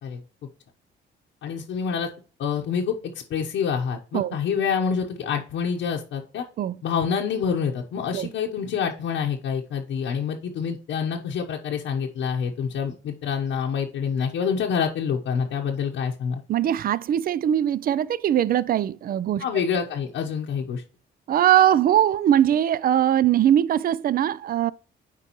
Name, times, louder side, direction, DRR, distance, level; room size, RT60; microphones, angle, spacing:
voice 1, 1.4-2.1 2.4-6.4 6.8-16.4 19.4-20.8, left 6 dB, 75° left, 1.0 m, -27 dB
voice 2, 16.5-19.6 21.3-24.7, right 11 dB, 50° right, 0.4 m, -21 dB
8.3 x 4.6 x 3.0 m
cardioid pair, 90°, 20 cm